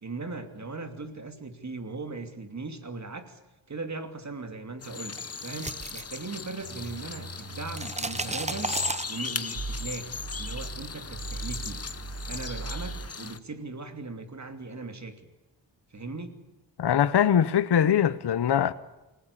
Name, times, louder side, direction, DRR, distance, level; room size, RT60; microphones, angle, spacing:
voice 1, 0.0-3.4 3.7-5.2 5.4-8.7 9.0-10.1 10.4-11.8 12.2-15.2 15.9-16.3, right 3 dB, 35° right, 2.8 m, -38 dB
sound 1, 4.8-13.4, left 5 dB, 30° left, 1.2 m, -38 dB
sound 2, 5.2-6.9 7.1-9.6, right 2 dB, 15° right, 1.0 m, -35 dB
sound 3, 6.6-8.9 9.5-13.1, right 3 dB, 55° right, 2.0 m, -39 dB
voice 2, 16.8-18.7, left 9 dB, 60° left, 1.0 m, -22 dB
28.5 x 19.0 x 8.5 m
wide cardioid pair, 135°, 45 cm